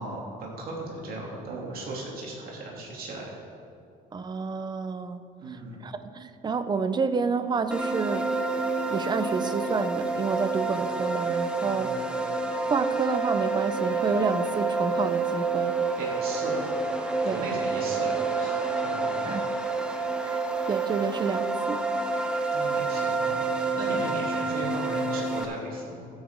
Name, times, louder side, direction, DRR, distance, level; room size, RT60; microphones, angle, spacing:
voice 1, 0.0-3.4 5.4-5.8 11.6-11.9 16.0-16.6 17.3-19.4 22.5-26.1, right 2 dB, 60° right, -3 dB, 2.7 m, -37 dB
voice 2, 4.1-8.3 8.9-12.0 12.7-15.8 17.2-17.4 19.3-19.5 20.2-20.4 20.7-21.8, right 5 dB, 25° right, 11 dB, 0.6 m, -29 dB
sound 1, 7.7-25.4, right 3 dB, 5° right, 1.0 m, -28 dB
15.0 x 8.8 x 3.7 m, 2.3 s
cardioid pair, 110°, 17 cm